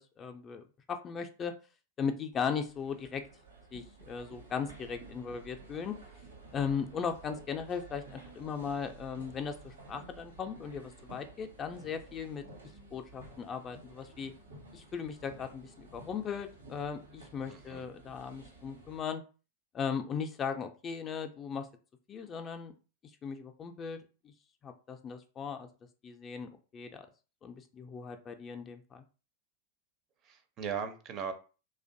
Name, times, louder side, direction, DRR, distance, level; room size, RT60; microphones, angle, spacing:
voice 1, 0.0-1.5 2.0-3.2 3.7-5.9 6.5-12.4 12.9-14.3 14.7-19.2 19.7-21.7 22.1-22.7 23.2-24.0 24.2-24.3 24.6-25.7 26.0-27.1 27.4-29.0, left 6 dB, 30° left, 0.3 m, -37 dB
sound 1, 2.3-19.0, right 3 dB, 80° right, 0.8 m, -53 dB
voice 2, 17.5-17.9 30.2-31.3, right 7 dB, 40° right, 0.4 m, -38 dB
2.5 x 2.1 x 2.5 m
figure-of-eight pair, 95°, 0 cm